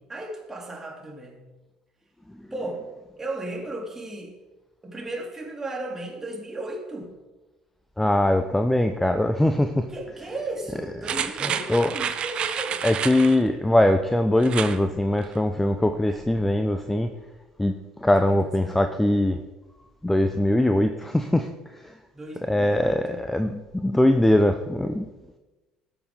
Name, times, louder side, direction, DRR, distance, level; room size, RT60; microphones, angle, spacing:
voice 1, 0.0-1.4 2.5-2.8 3.2-4.3 4.8-7.1 9.9-12.8 16.1-16.2 18.0-18.9 22.1-23.2, right 2 dB, 15° right, -1 dB, 3.3 m, -35 dB
voice 2, 8.0-9.9 11.7-12.0 12.8-17.1 17.6-19.4 20.0-21.9 22.5-25.1, left 1 dB, 5° left, 8 dB, 0.7 m, -22 dB
sound 1, 11.0-13.4 14.4-14.8 15.2-15.3, right 8 dB, 45° right, 0.8 m, -29 dB
19.0 x 6.9 x 3.8 m, 1.2 s
figure-of-eight pair, 60°, 2 cm